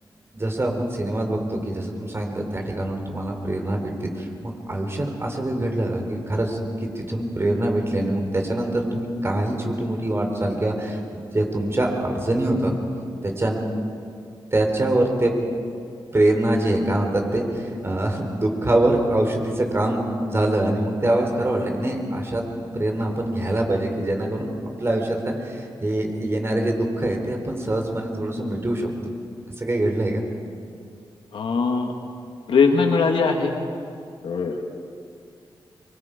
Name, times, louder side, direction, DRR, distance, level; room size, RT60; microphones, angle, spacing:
voice 1, 0.3-11.0 11.3-12.7 13.2-13.6 14.5-15.3 16.1-22.4 22.7-24.5 24.8-28.9 29.6-30.2, right 1 dB, 30° right, 2 dB, 3.7 m, -24 dB
voice 2, 31.3-31.9 32.5-33.5 34.2-34.6, left 4 dB, 85° left, 3 dB, 1.8 m, -20 dB
24.5 x 23.0 x 5.2 m, 2.3 s
wide cardioid pair, 90°, 9 cm